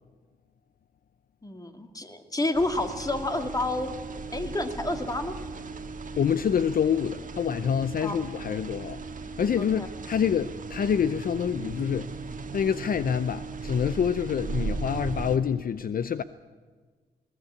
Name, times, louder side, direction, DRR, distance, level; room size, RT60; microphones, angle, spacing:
voice 1, 1.4-4.0 4.3-5.3 8.0-8.2 9.6-9.9, left 2 dB, 20° left, 2.2 m, -29 dB
sound 1, 2.5-15.4, right 4 dB, 50° right, 1.7 m, -37 dB
voice 2, 6.2-9.0 9.4-12.1 12.5-16.2, left 7 dB, 60° left, 0.7 m, -26 dB
21.5 x 17.5 x 8.4 m
cardioid pair, 90°, 17 cm